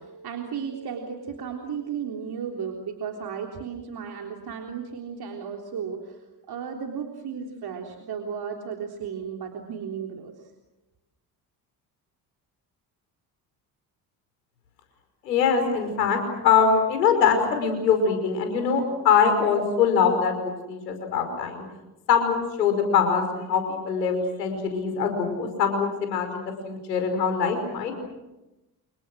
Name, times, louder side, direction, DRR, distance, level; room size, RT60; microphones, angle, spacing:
voice 1, 0.0-10.3, right 7 dB, 50° right, 2 dB, 3.6 m, -34 dB
voice 2, 15.2-21.6 22.1-28.0, left 6 dB, 85° left, 6 dB, 5.4 m, -23 dB
29.5 x 28.0 x 6.4 m, 0.98 s
hypercardioid pair, 55°, 48 cm